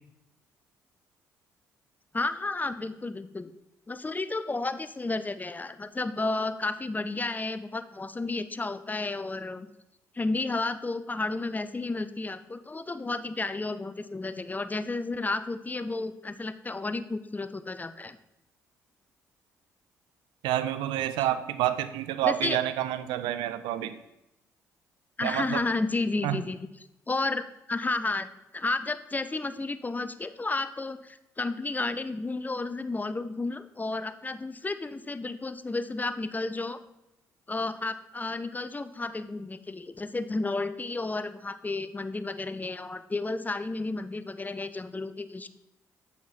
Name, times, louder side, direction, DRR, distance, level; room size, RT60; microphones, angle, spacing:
voice 1, 2.1-3.5 3.9-9.7 10.1-18.2 22.3-22.6 25.2-26.6 27.1-28.3 28.5-36.8 37.5-45.5, left 3 dB, 20° left, 12 dB, 0.5 m, -32 dB
voice 2, 20.4-24.0 25.2-25.6 26.2-26.4, right 12 dB, 75° right, 13 dB, 0.4 m, -28 dB
7.4 x 4.2 x 4.2 m, 0.88 s
hypercardioid pair, 45°, 8 cm